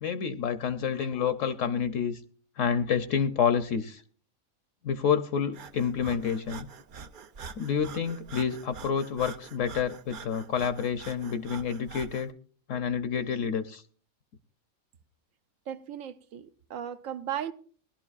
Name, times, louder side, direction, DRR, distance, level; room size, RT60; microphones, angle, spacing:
voice 1, 0.0-2.2 2.6-4.0 4.8-6.7 7.6-12.3 12.7-13.8, left 7 dB, 70° left, 1.0 m, -28 dB
Breathing, 5.5-12.3, right 6 dB, 55° right, 0.6 m, -45 dB
voice 2, 15.7-17.5, right 9 dB, 70° right, 1.1 m, -36 dB
20.0 x 11.5 x 2.4 m
omnidirectional pair, 1.5 m